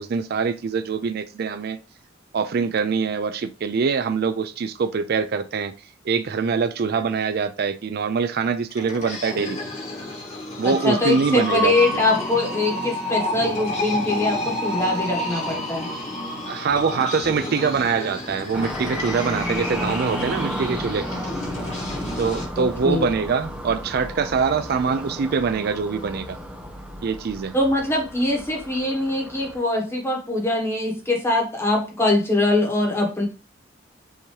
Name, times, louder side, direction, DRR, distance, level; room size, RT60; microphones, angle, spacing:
voice 1, 0.0-1.8 2.3-5.7 6.1-9.6 10.6-11.8 16.5-21.1 22.2-26.4 27.0-27.5, right 5 dB, 55° right, 0.4 m, -24 dB
sound 1, 8.7-22.5, left 1 dB, 40° left, 1.4 m, -30 dB
voice 2, 10.6-15.9 22.6-23.1 27.5-33.3, left 2 dB, 15° left, 1.3 m, -23 dB
sound 2, 18.5-29.6, equal, 5° right, 0.7 m, -34 dB
5.6 x 2.9 x 3.2 m
head